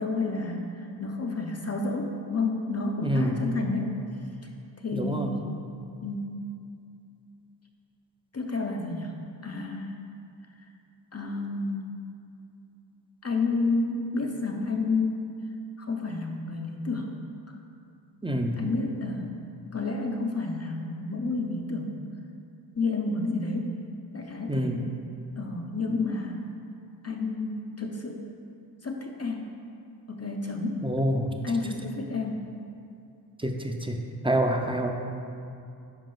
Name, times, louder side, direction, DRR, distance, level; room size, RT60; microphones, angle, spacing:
voice 1, 0.0-4.0 4.4-4.5 4.8-5.5 6.0-6.4 8.3-10.0 10.6-10.7 11.1-12.0 13.2-15.4 15.8-17.2 17.5-17.6 18.6-19.3 19.7-22.0 22.7-23.8 24.1-24.9 25.4-26.4 27.0-28.2 28.8-29.6 30.1-30.9 31.4-32.5, left 3 dB, 35° left, 2 dB, 0.7 m, -30 dB
voice 2, 3.0-3.7 4.9-5.3 18.2-18.6 24.5-24.8 30.8-31.3 33.4-34.9, equal, 10° right, 3 dB, 0.7 m, -27 dB
10.5 x 4.8 x 3.9 m, 2.5 s
wide cardioid pair, 70°, 43 cm